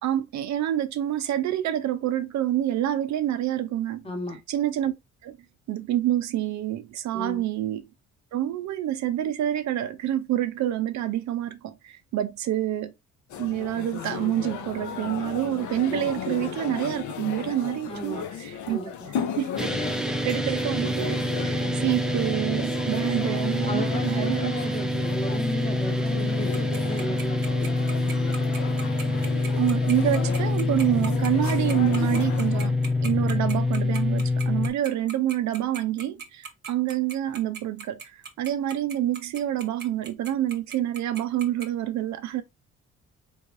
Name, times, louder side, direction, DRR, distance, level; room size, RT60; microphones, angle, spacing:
voice 1, 0.0-4.0 4.5-4.9 5.2-5.4 5.7-7.8 8.3-12.9 13.4-18.8 19.4-19.7 20.2-24.5 29.6-42.4, right 12 dB, 65° right, 0.5 m, -27 dB
voice 2, 4.0-4.4 7.1-7.4 17.9-18.2 18.7-19.1 23.7-28.4, equal, 20° left, 1.0 m, -34 dB
sound 1, 13.3-32.7, left 8 dB, 75° left, 0.7 m, -36 dB
sound 2, 19.6-34.7, left 2 dB, ahead, 0.4 m, -26 dB
Tick-tock, 26.5-41.7, right 6 dB, 35° right, 0.8 m, -38 dB
3.4 x 3.2 x 2.5 m
cardioid pair, 90°, 30 cm